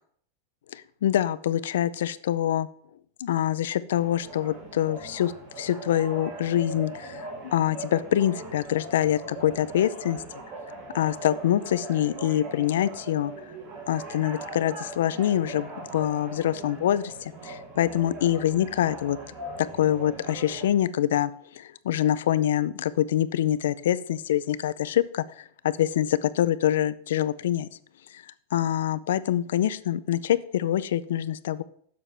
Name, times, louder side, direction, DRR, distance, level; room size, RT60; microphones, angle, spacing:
voice 1, 0.7-2.7 3.2-10.2 10.9-13.3 13.9-19.2 19.6-27.7 28.5-31.6, left 11 dB, 75° left, 17 dB, 0.4 m, -25 dB
sound 1, 3.9-20.7, right 2 dB, 35° right, 2.3 m, -40 dB
8.8 x 7.3 x 3.4 m, 0.63 s
supercardioid pair, 175°, 0 cm